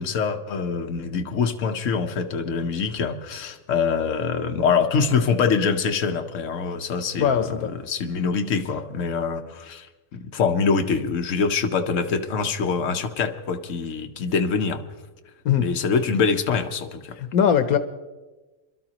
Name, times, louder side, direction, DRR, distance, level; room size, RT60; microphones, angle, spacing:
voice 1, 0.0-9.9 10.1-14.8 15.6-17.2, left 5 dB, 65° left, 5 dB, 1.3 m, -24 dB
voice 2, 7.2-7.7 15.4-15.7 17.2-17.8, left 8 dB, 90° left, 10 dB, 1.3 m, -20 dB
27.5 x 12.5 x 2.9 m, 1.2 s
omnidirectional pair, 1.5 m